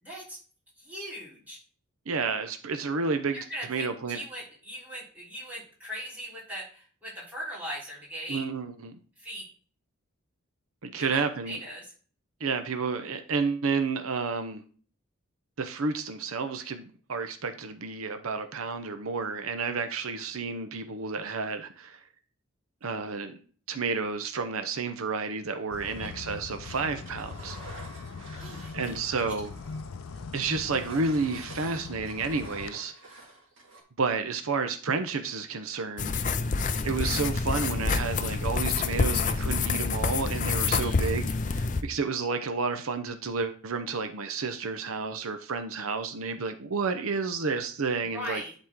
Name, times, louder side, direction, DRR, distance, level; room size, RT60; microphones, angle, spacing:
voice 1, 0.0-0.4 0.8-1.6 3.3-8.5 9.2-9.5 11.0-11.9 25.8-26.2 28.4-29.2 40.6-41.0 48.0-48.6, equal, 10° right, -7 dB, 3.6 m, -40 dB
voice 2, 2.1-3.4 3.7-4.2 8.3-9.0 10.8-11.6 12.4-14.6 15.6-22.0 22.8-23.4 23.7-27.6 28.7-29.5 30.3-32.9 34.0-36.2 36.8-48.4, right 4 dB, 90° right, 8 dB, 0.8 m, -31 dB
sound 1, 25.7-32.7, left 4 dB, 90° left, 0.5 m, -41 dB
Engine, 26.6-29.2 29.4-33.8, right 2 dB, 65° right, 2.3 m, -48 dB
sound 2, 36.0-41.8, left 4 dB, 35° left, 0.5 m, -27 dB
11.0 x 4.3 x 3.6 m, 0.43 s
head